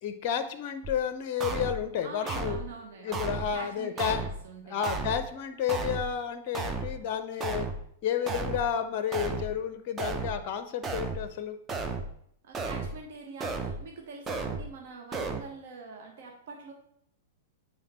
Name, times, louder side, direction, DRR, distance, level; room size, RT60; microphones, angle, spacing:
voice 1, 0.0-2.6 3.0-4.2 4.7-7.7 8.0-11.6, left 8 dB, 45° left, 10 dB, 0.5 m, -31 dB
sound 1, 0.8-1.0 1.4-1.8 2.3-2.7 3.1-3.5 4.0-4.4 4.8-5.3 5.7-6.1 6.5-7.0 7.4-7.8 8.3-8.7 9.1-9.5 10.0-10.4 10.8-11.3 11.7-12.1 12.5-13.0 13.4-13.8 14.3-14.7 15.1-15.4, right 4 dB, 20° right, 0.6 m, -33 dB
voice 2, 2.0-5.1 12.4-16.7, right 4 dB, 55° right, 1 dB, 1.0 m, -45 dB
8.5 x 4.7 x 3.0 m, 0.70 s
figure-of-eight pair, 100°, 0 cm